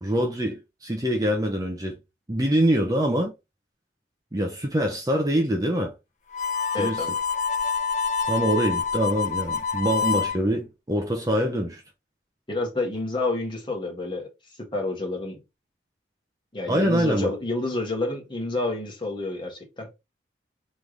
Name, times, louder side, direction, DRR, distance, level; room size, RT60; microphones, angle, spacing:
voice 1, 0.0-2.0 2.3-3.3 4.3-5.9 6.8-7.0 8.3-11.8 16.7-17.3, right 1 dB, 20° right, 0.6 m, -24 dB
Harmonica, 6.3-10.4, left 5 dB, 40° left, 0.7 m, -26 dB
voice 2, 6.7-7.1 12.5-14.3 14.6-15.4 16.5-19.9, left 2 dB, 25° left, 1.4 m, -29 dB
3.3 x 3.2 x 3.7 m
head